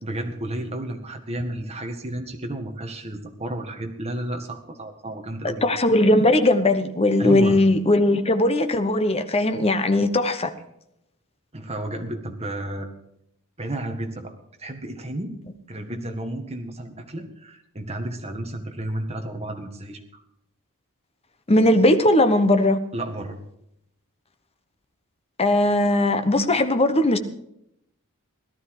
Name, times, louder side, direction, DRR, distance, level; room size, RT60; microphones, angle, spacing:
voice 1, 0.0-5.6 7.2-7.6 11.5-12.9 13.6-14.3 14.6-15.4 15.7-20.2 22.9-23.4, right 1 dB, 30° right, 4 dB, 1.9 m, -32 dB
voice 2, 5.6-10.5 21.5-22.8 25.4-27.2, left 1 dB, 25° left, 9 dB, 1.1 m, -19 dB
17.5 x 12.5 x 4.9 m, 0.77 s
head